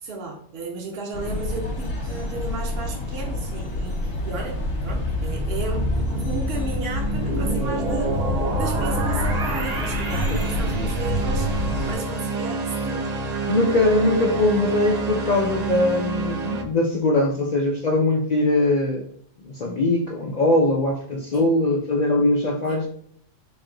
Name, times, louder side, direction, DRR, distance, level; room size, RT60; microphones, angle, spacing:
voice 1, 0.0-8.2 8.6-13.6 21.3-21.5 22.7-22.9, right 2 dB, 60° right, 0 dB, 0.8 m, -34 dB
sound 1, 1.1-11.9, left 1 dB, 85° left, 1.2 m, -27 dB
sound 2, 4.5-16.6, right 3 dB, 75° right, 0.3 m, -28 dB
voice 2, 13.5-19.0 19.4-22.9, left 2 dB, 60° left, 0 dB, 0.4 m, -21 dB
3.2 x 2.7 x 3.8 m, 0.62 s
omnidirectional pair, 1.3 m